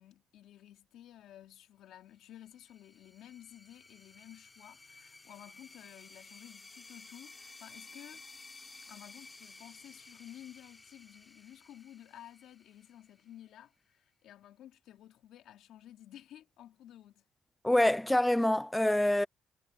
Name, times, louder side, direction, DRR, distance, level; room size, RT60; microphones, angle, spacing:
voice 1, 0.0-8.2 8.8-17.2, left 12 dB, 80° left, 3.0 m, -53 dB
sound 1, 2.3-13.6, left 3 dB, 25° left, 3.4 m, -55 dB
voice 2, 17.6-19.3, left 1 dB, 10° left, 0.3 m, -26 dB
cardioid pair, 90°, 0 cm